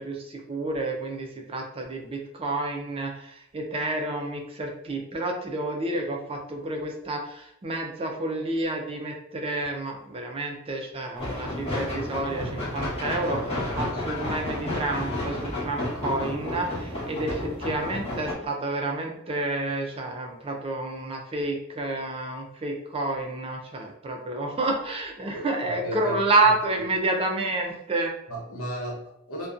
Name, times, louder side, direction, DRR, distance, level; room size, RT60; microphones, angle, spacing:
voice 1, 0.0-28.1, right 2 dB, 25° right, 2 dB, 0.3 m, -29 dB
sound 1, 11.2-18.3, left 1 dB, 30° left, 0.8 m, -31 dB
voice 2, 25.3-26.2 26.7-26.8 28.3-29.5, equal, 70° left, -2 dB, 0.8 m, -34 dB
2.5 x 2.1 x 2.4 m, 0.80 s
head